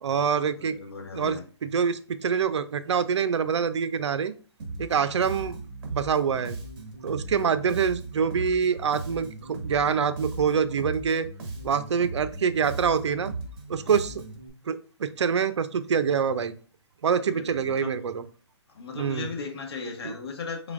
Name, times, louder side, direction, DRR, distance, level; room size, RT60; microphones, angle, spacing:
voice 1, 0.0-0.8 1.1-4.3 4.8-5.6 5.9-6.6 7.0-11.3 11.6-13.3 13.7-14.2 14.7-16.5 17.0-18.2 19.0-19.3 20.0-20.1, right 6 dB, 80° right, 0.5 m, -25 dB
voice 2, 0.6-1.4 5.4-5.6 17.2-17.9 18.7-20.7, left 4 dB, 60° left, 1.3 m, -37 dB
Bass guitar, 4.6-14.5, right 3 dB, 55° right, 1.4 m, -38 dB
4.9 x 3.8 x 2.5 m
hypercardioid pair, 155°, 15 cm